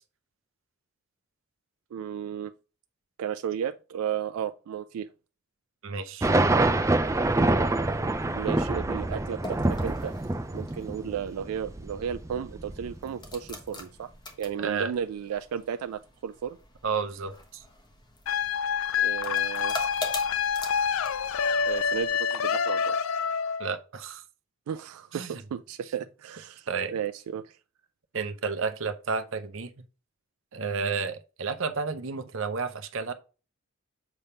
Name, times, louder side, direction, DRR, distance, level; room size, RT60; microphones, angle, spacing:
voice 1, 1.9-2.5 3.2-5.1 8.3-10.1 10.5-14.1 14.4-16.6 19.0-19.7 21.6-23.0 24.7-27.6, right 8 dB, 90° right, 0.3 m, -34 dB
voice 2, 5.8-6.3 14.6-14.9 16.8-17.6 23.6-24.2 25.1-25.3 26.7-26.9 28.1-29.8 30.5-33.1, right 5 dB, 60° right, 0.7 m, -31 dB
sound 1, 6.2-13.5, right 2 dB, 15° right, 0.4 m, -26 dB
sound 2, 9.1-22.1, left 2 dB, 20° left, 1.0 m, -44 dB
sound 3, 18.3-23.8, left 6 dB, 70° left, 0.4 m, -27 dB
7.0 x 3.4 x 5.5 m
head